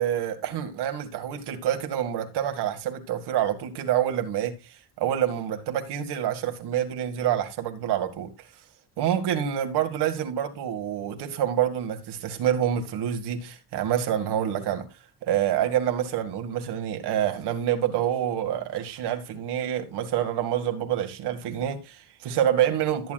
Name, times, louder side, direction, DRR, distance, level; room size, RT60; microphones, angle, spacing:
voice 1, 0.0-8.5 9.0-14.9 15.2-23.1, right 10 dB, 90° right, 2.1 m, -27 dB
13.5 x 9.5 x 2.4 m
cardioid pair, 165°, 39 cm